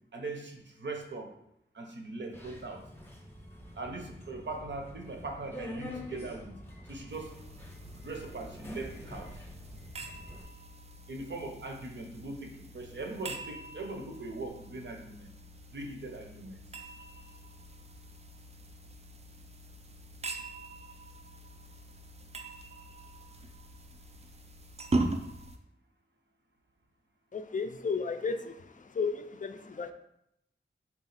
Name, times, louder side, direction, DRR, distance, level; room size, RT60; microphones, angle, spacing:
voice 1, 0.1-1.3 1.7-2.8 3.8-6.5 6.9-7.3 8.0-9.3 11.1-15.3 15.7-16.6, right 2 dB, 70° right, 2 dB, 0.7 m, -40 dB
Subway metro underground, 2.3-10.4, left 1 dB, 10° left, 0.7 m, -47 dB
sound 1, 7.1-25.6, right 2 dB, 35° right, 0.4 m, -41 dB
voice 2, 27.3-28.5 28.9-29.9, left 5 dB, 40° left, 8 dB, 0.4 m, -33 dB
4.1 x 2.4 x 4.0 m, 0.77 s
wide cardioid pair, 95°, 19 cm